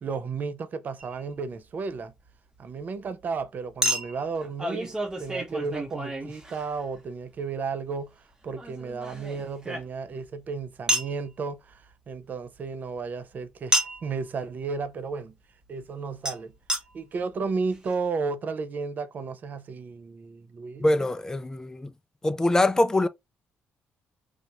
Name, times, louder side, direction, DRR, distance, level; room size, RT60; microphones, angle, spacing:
voice 1, 0.0-2.1 2.6-15.4 15.7-16.5 16.9-20.9, right 4 dB, 45° right, 0.4 m, -33 dB
Chink clink, 1.0-1.1 3.8-7.0 8.6-10.2 10.9-11.2 13.7-14.1 16.3-16.4 16.7-16.8 17.5-17.6 17.7-17.8, equal, 15° right, 0.8 m, -30 dB
voice 2, 20.8-21.9 22.2-23.1, left 2 dB, 15° left, 0.4 m, -23 dB
3.2 x 2.3 x 2.8 m
cardioid pair, 95°, 4 cm